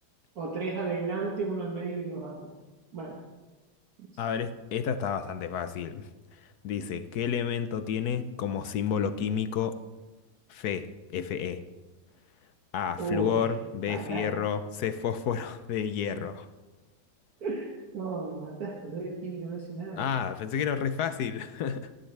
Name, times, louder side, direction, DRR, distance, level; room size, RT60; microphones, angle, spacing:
voice 1, 0.4-2.5 2.9-3.2 4.0-4.2 13.0-13.5 13.9-14.3 17.4-20.2, right 3 dB, 65° right, 0 dB, 1.8 m, -34 dB
voice 2, 4.2-6.1 6.6-9.8 10.5-11.6 12.7-16.5 19.9-21.9, left 7 dB, 70° left, 10 dB, 1.2 m, -30 dB
19.0 x 13.0 x 3.3 m, 1.2 s
omnidirectional pair, 1.8 m